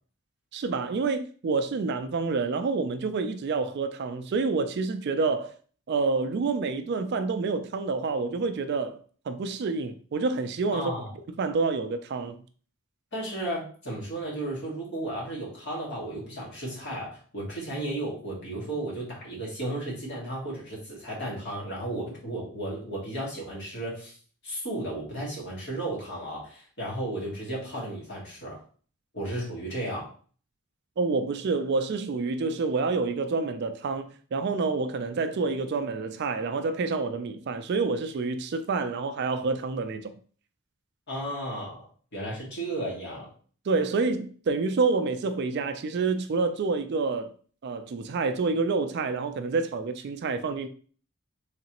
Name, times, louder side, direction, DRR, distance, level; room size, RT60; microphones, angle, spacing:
voice 1, 0.5-5.5 5.9-10.9 11.4-12.4 31.0-40.1 43.7-47.3 47.6-50.7, right 4 dB, 50° right, 0.3 m, -28 dB
voice 2, 10.7-11.1 13.1-24.1 24.4-28.6 29.1-30.1 41.1-43.3, right 1 dB, 50° left, 1.8 m, -34 dB
3.8 x 3.2 x 2.9 m
head